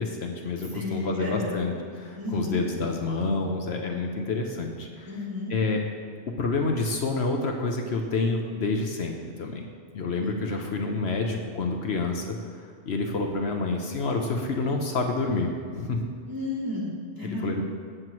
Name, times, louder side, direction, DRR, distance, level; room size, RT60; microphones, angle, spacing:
voice 1, 0.0-5.1 5.5-5.8 6.3-9.7 9.9-16.0 17.2-17.6, left 3 dB, 70° left, 2 dB, 1.1 m, -28 dB
voice 2, 0.7-1.6 2.2-2.6 5.1-5.5 10.2-10.5 16.3-17.5, left 2 dB, 15° right, -7 dB, 2.5 m, -32 dB
17.5 x 7.6 x 3.1 m, 2.1 s
omnidirectional pair, 1.2 m